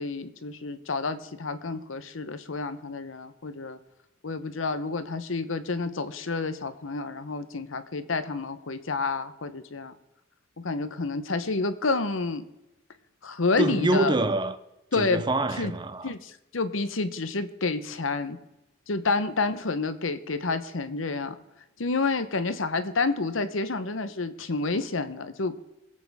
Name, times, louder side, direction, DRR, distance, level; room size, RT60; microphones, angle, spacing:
voice 1, 0.0-3.8 4.2-9.9 10.6-12.4 13.2-14.1 14.9-15.2 15.6-15.7 16.0-18.4 18.9-21.4 21.8-25.6, left 3 dB, 85° left, 1.0 m, -29 dB
voice 2, 13.6-14.6 14.9-16.1, right 2 dB, 25° right, 0.6 m, -25 dB
22.0 x 8.6 x 3.6 m
head